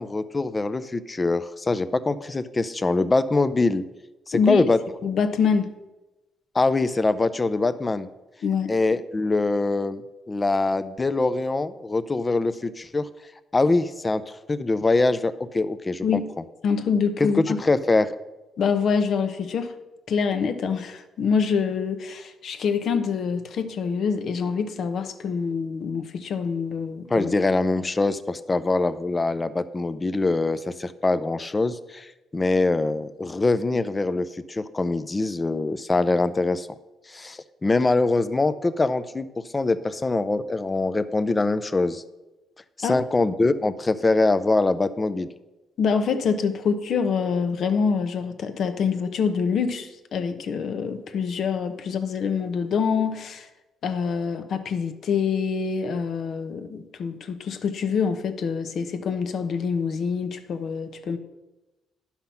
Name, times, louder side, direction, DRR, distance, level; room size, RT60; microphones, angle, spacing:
voice 1, 0.0-3.8 4.3-4.8 6.5-8.1 8.7-10.0 10.3-13.1 13.5-16.2 17.2-18.1 27.1-36.7 37.1-39.3 39.5-42.0 42.8-45.3, left 3 dB, 25° left, 13 dB, 0.5 m, -23 dB
voice 2, 4.3-4.6 5.0-5.7 8.4-8.7 16.0-16.3 16.6-17.6 18.6-19.7 20.1-27.3 42.8-43.0 45.8-53.5 53.8-61.2, left 6 dB, 65° left, 9 dB, 0.9 m, -25 dB
10.5 x 5.8 x 5.7 m, 1.1 s
cardioid pair, 90°, 0 cm